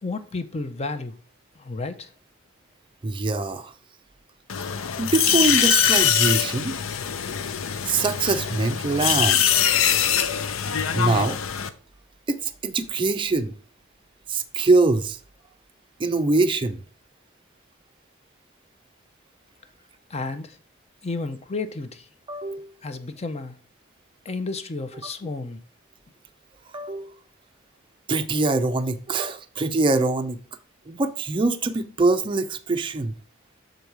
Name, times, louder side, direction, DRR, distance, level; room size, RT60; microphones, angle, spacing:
voice 1, 0.0-1.1 1.6-2.1 20.1-20.6 21.0-22.1 22.8-23.6 24.2-25.6, left 3 dB, 30° left, 0.6 m, -32 dB
voice 2, 3.0-3.7 5.0-6.7 7.8-9.4 10.9-11.4 12.3-13.5 14.3-15.2 16.0-16.8 22.3-22.7 26.7-27.1 28.1-30.4 30.9-33.1, right 3 dB, 25° right, 0.4 m, -23 dB
sound 1, 4.5-11.7, left 9 dB, 80° left, 0.6 m, -23 dB
7.0 x 3.9 x 4.6 m
head